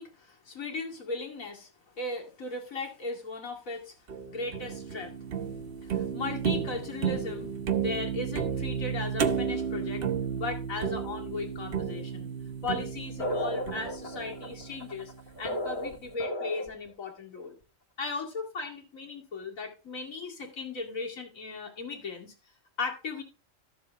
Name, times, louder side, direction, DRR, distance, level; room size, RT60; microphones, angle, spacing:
voice 1, 0.0-1.7 2.0-3.9 4.3-5.2 5.8-10.0 10.3-12.3 12.6-15.1 15.4-17.6 18.0-22.3 22.8-23.2, left 3 dB, 85° left, 1 dB, 2.7 m, -37 dB
sound 1, 4.1-15.3, right 7 dB, 50° right, 0.9 m, -33 dB
sound 2, 13.2-16.9, left 1 dB, 50° left, 1.8 m, -34 dB
13.0 x 7.1 x 3.4 m, 0.29 s
omnidirectional pair, 1.4 m